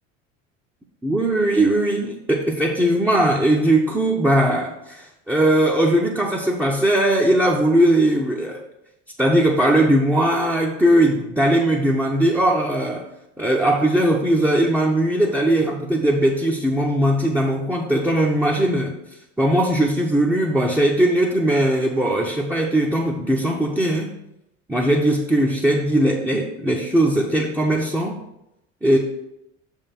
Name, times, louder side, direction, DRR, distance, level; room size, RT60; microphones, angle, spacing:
voice 1, 1.0-8.6 9.2-13.1 13.4-19.0 19.4-24.1 24.7-28.2 28.8-29.0, right 1 dB, 5° right, -3 dB, 0.8 m, -19 dB
6.8 x 3.6 x 5.8 m, 0.86 s
hypercardioid pair, 70°, 38 cm